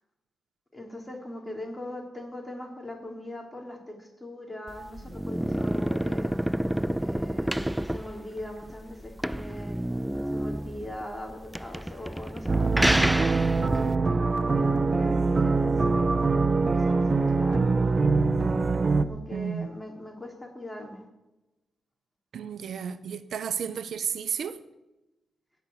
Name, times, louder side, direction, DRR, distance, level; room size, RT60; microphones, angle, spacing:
voice 1, 0.7-6.3 7.0-7.5 7.8-9.8 10.3-16.1 16.6-18.0 19.0-21.1, left 1 dB, 15° left, 3.9 m, -40 dB
sound 1, 4.7-13.9, right 1 dB, 5° right, 0.3 m, -29 dB
sound 2, 12.5-19.0, right 3 dB, 40° right, 0.9 m, -23 dB
voice 2, 19.3-19.7 22.3-24.6, right 7 dB, 75° right, 0.8 m, -32 dB
17.5 x 6.0 x 8.4 m
cardioid pair, 65°, 0 cm